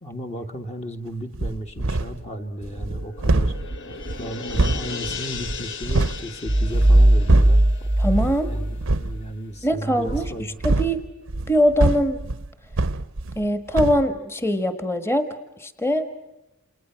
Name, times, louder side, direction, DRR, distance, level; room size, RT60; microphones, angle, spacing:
voice 1, 0.0-3.5 4.2-7.6 8.5-10.5, equal, 30° left, 4 dB, 1.5 m, -34 dB
sound 1, 1.3-2.3 2.6-6.2 6.6-7.7 8.1-8.4 8.8-9.2 10.0-13.5 13.7-14.1, right 2 dB, 60° right, 0.8 m, -25 dB
sound 2, 2.1-9.1 9.4-9.5, left 5 dB, 55° left, 1.6 m, -37 dB
sound 3, 6.5-9.3, right 1 dB, 25° right, 0.9 m, -18 dB
voice 2, 8.0-8.5 9.6-11.0 11.5-12.2 13.3-15.3 15.6-16.1, equal, 10° left, 8 dB, 1.5 m, -22 dB
29.0 x 28.5 x 5.9 m, 0.97 s
head